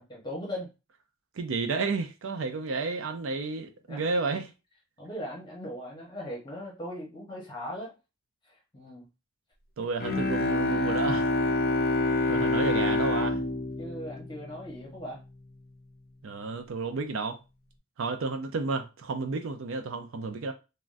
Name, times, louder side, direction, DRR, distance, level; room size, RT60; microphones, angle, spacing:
voice 1, 0.1-0.7 3.9-4.0 5.0-7.9 8.4-9.1 13.8-15.2, equal, 20° left, 0.8 m, -39 dB
voice 2, 1.3-4.5 9.8-11.3 12.3-13.4 16.2-17.4 18.0-20.5, right 4 dB, 60° right, 0.4 m, -31 dB
Bowed string instrument, 10.0-15.1, left 2 dB, 45° left, 0.5 m, -27 dB
3.4 x 2.2 x 2.5 m
head